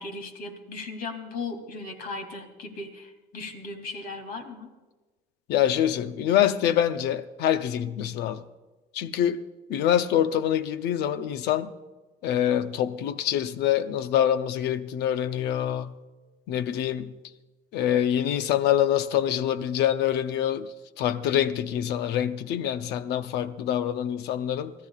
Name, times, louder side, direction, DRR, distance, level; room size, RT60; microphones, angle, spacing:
voice 1, 0.0-4.7, left 3 dB, 60° left, 2.8 m, -37 dB
voice 2, 5.5-8.4 8.9-9.4 9.7-11.7 12.2-15.9 16.5-17.2 17.7-24.7, left 10 dB, 85° left, 0.7 m, -25 dB
27.5 x 14.5 x 2.4 m
cardioid pair, 110°, 17 cm